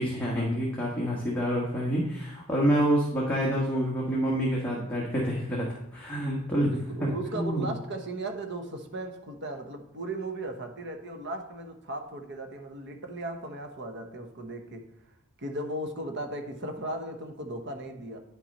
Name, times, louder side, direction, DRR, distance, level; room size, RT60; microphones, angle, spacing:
voice 1, 0.0-6.7 7.0-7.7, equal, 10° left, -5 dB, 1.3 m, -27 dB
voice 2, 6.7-14.9 15.4-18.2, right 2 dB, 55° right, 5 dB, 1.0 m, -36 dB
9.6 x 5.8 x 4.2 m, 0.84 s
head